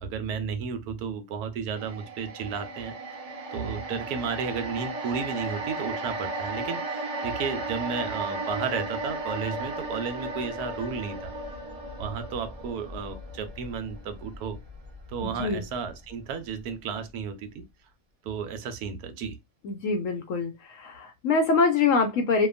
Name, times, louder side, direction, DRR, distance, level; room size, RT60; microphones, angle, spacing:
voice 1, 0.0-2.9 3.5-11.3 12.0-14.6 15.1-17.6 18.2-19.4, right 6 dB, 75° right, 1.1 m, -33 dB
sound 1, 1.8-16.1 16.5-16.6, right 2 dB, 45° right, 0.5 m, -35 dB
voice 2, 15.2-15.6 19.6-20.5 20.8-22.5, left 4 dB, 70° left, 0.8 m, -24 dB
2.8 x 2.3 x 2.3 m
omnidirectional pair, 1.7 m